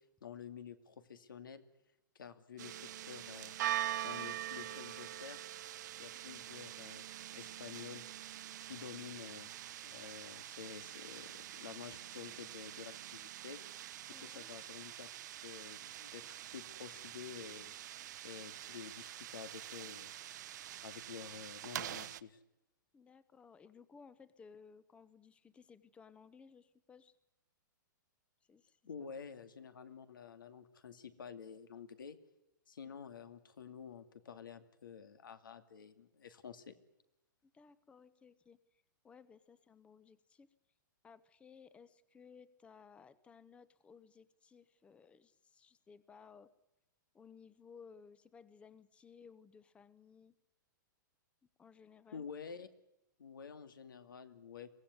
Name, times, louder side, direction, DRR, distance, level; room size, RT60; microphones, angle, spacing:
voice 1, 0.2-1.6 2.1-3.5 4.0-5.4 6.0-7.1 7.3-8.0 8.6-9.5 9.8-13.6 14.0-15.1 15.4-17.7 18.2-20.1 20.8-22.4 28.8-32.2 32.7-36.7 52.1-52.7 53.2-54.7, left 7 dB, 90° left, 10 dB, 2.4 m, -50 dB
sound 1, 2.6-22.2, right 13 dB, 60° right, 1.0 m, -45 dB
voice 2, 14.1-14.5 22.9-27.2 28.5-28.8 37.4-38.6 39.0-40.5 41.0-46.5 47.1-50.3 51.6-52.3, left 6 dB, 10° left, 16 dB, 0.8 m, -59 dB
23.5 x 16.5 x 9.7 m, 0.91 s
hypercardioid pair, 150°, 11 cm